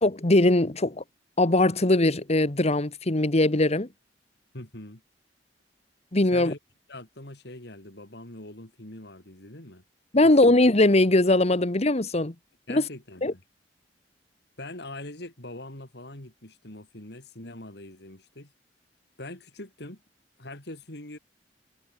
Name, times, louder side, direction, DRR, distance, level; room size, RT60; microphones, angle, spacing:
voice 1, 0.0-1.0 1.4-3.9 6.1-6.5 10.1-12.3 12.7-12.8 13.2-13.3, left 2 dB, 35° left, 1.4 m, -21 dB
voice 2, 4.5-5.0 6.3-6.6 6.9-9.8 10.2-10.6 12.7-13.4 14.6-18.5 19.2-20.0 20.4-21.2, left 1 dB, 65° left, 3.9 m, -42 dB
head